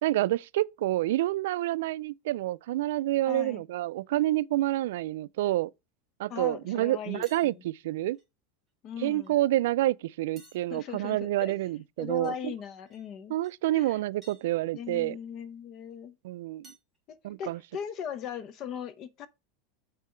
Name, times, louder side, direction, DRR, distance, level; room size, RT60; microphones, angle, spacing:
voice 1, 0.0-5.7 6.2-8.2 9.0-12.5 13.3-15.2 16.2-16.7 17.2-17.6, right 15 dB, 80° right, 0.3 m, -28 dB
voice 2, 3.3-3.6 6.3-7.6 8.8-9.4 10.7-11.5 12.0-13.4 13.7-14.0 14.7-16.2 17.1-19.3, left 8 dB, 35° left, 0.8 m, -39 dB
sound 1, 7.2-7.5 8.1-8.2 9.2-9.4 10.4-11.0 12.2-12.4 12.9-13.1 13.4-13.5 14.2-14.5 15.8-15.9 16.6-17.0, right 2 dB, 15° right, 3.2 m, -56 dB
7.4 x 5.5 x 4.4 m
supercardioid pair, 150°, 0 cm